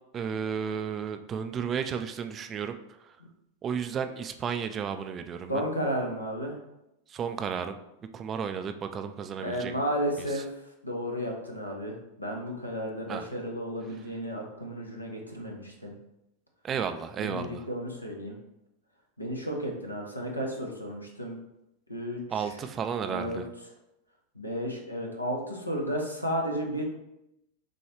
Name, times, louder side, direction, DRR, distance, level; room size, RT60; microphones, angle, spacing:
voice 1, 0.1-2.8 3.6-5.6 7.1-7.8 8.1-9.8 10.2-10.4 13.1-13.3 16.6-17.7 22.3-23.4, right 7 dB, 25° right, 8 dB, 0.3 m, -33 dB
voice 2, 5.5-6.6 9.4-10.4 10.8-15.9 17.2-18.4 19.2-21.4 21.9-22.5 23.1-23.4 24.4-26.8, equal, 85° left, 1 dB, 0.8 m, -33 dB
6.4 x 2.3 x 3.0 m, 0.87 s
figure-of-eight pair, 90°, 0 cm